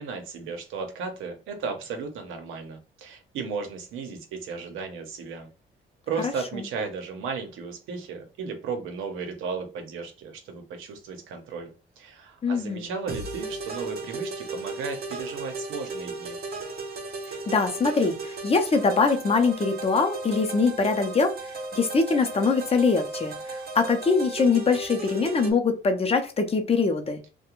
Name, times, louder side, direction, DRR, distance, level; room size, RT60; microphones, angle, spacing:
voice 1, 0.0-5.5 6.1-16.4, right 5 dB, 85° right, 0.8 m, -35 dB
voice 2, 12.4-12.9 17.5-27.2, left 4 dB, 30° left, 0.6 m, -23 dB
sound 1, 13.1-25.5, right 3 dB, 50° right, 0.7 m, -35 dB
2.4 x 2.2 x 2.9 m
cardioid pair, 90°, 20 cm